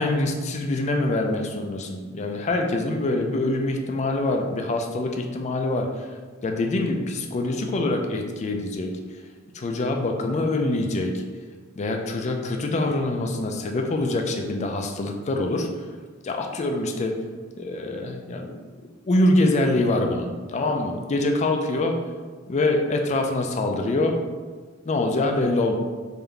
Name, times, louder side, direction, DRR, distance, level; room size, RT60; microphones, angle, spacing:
voice 1, 0.0-9.2 9.5-11.2 11.8-15.8 16.2-17.2 17.6-18.6 19.0-22.0 22.5-24.1 24.8-25.7, left 2 dB, 35° left, 3 dB, 0.4 m, -25 dB
3.7 x 2.6 x 3.3 m, 1.4 s
head